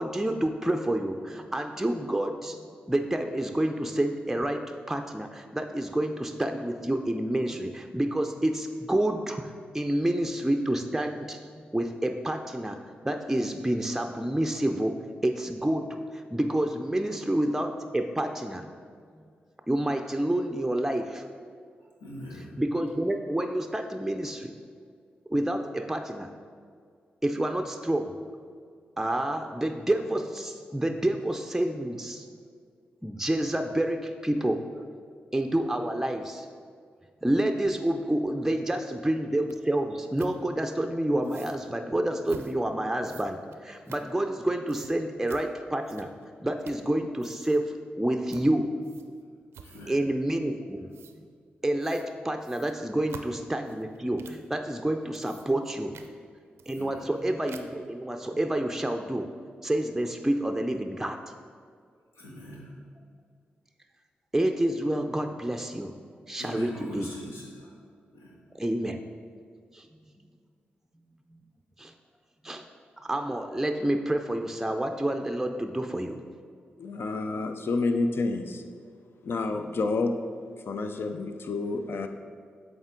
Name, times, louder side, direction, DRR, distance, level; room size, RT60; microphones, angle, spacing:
voice 1, 0.0-2.6 2.9-15.0 15.2-18.7 19.7-21.2 22.6-24.5 25.3-26.3 27.2-28.2 29.0-32.3 33.0-34.6 35.3-36.5 37.2-46.1 46.4-48.7 49.9-50.9 51.6-56.0 56.7-59.3 59.6-61.2 64.3-66.0 66.3-67.1 68.5-69.0 69.7-69.9 71.3-71.4 71.8-71.9 72.4-72.7 73.0-76.2, right 1 dB, 10° right, 5 dB, 0.5 m, -28 dB
voice 2, 22.0-22.6 49.6-50.0 56.8-57.1 62.1-62.7 66.4-67.7 68.1-68.4, left 1 dB, 85° left, -4 dB, 1.4 m, -42 dB
sound 1, 39.5-39.6 40.2-40.4 41.2-41.6 42.3-42.6 43.0-44.4 44.7-44.9 45.3-45.5 45.8-46.3 46.6-46.9 47.2-47.6 48.3-48.5 48.8-49.2 49.5-50.0 50.9-51.2 51.8-52.1 52.4-54.5 55.0-55.7 55.9-56.1 56.6-57.2 57.5-57.9, right 7 dB, 80° right, 0.4 m, -48 dB
voice 3, 76.8-78.6 79.2-80.2 80.6-82.1, left 3 dB, 65° left, 7 dB, 0.5 m, -29 dB
7.8 x 3.7 x 3.8 m, 2.1 s
supercardioid pair, 40°, 4 cm